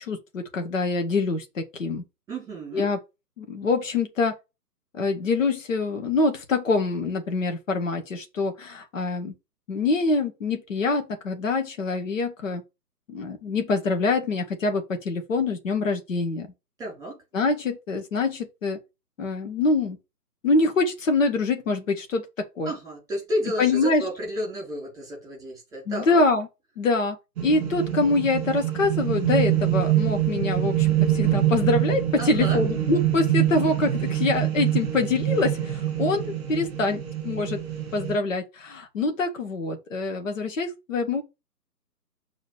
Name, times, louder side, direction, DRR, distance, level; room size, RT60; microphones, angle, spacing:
voice 1, 0.0-2.0 2.7-3.0 3.4-4.4 4.9-9.3 9.7-12.6 13.1-16.5 17.3-18.8 19.2-20.0 20.4-22.3 22.6-22.7 23.6-24.0 25.9-26.5 26.8-27.2 27.4-30.9 31.1-37.6 37.9-41.2, left 3 dB, 50° left, 2.1 m, -25 dB
voice 2, 2.3-2.9 16.8-17.2 22.6-26.2 32.2-32.6, equal, 5° right, 4.5 m, -32 dB
sound 1, 27.4-38.2, right 12 dB, 25° right, 1.9 m, -25 dB
6.6 x 4.0 x 5.0 m
figure-of-eight pair, 145°, 48 cm